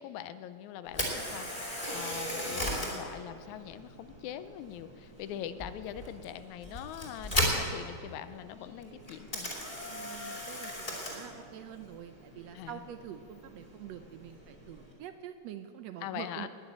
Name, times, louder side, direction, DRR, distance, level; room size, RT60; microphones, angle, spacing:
voice 1, 0.0-9.5 12.5-12.9 16.0-16.5, left 11 dB, 80° left, 12 dB, 2.0 m, -42 dB
Camera, 0.9-14.9, equal, 15° left, 2.7 m, -38 dB
voice 2, 9.9-16.5, right 10 dB, 75° right, 8 dB, 1.6 m, -46 dB
20.0 x 7.0 x 8.8 m, 2.2 s
omnidirectional pair, 3.4 m